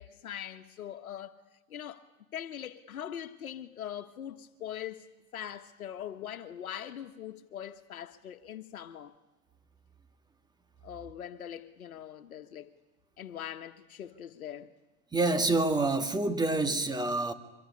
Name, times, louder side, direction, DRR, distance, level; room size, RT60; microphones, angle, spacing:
voice 1, 0.0-1.4 1.7-2.1 2.3-5.1 5.3-9.1 10.8-12.7 13.2-14.7, left 10 dB, 80° left, 1.5 m, -42 dB
voice 2, 15.1-17.3, right 2 dB, 10° right, 2.1 m, -27 dB
25.0 x 22.5 x 9.9 m
hypercardioid pair, 115°, 42 cm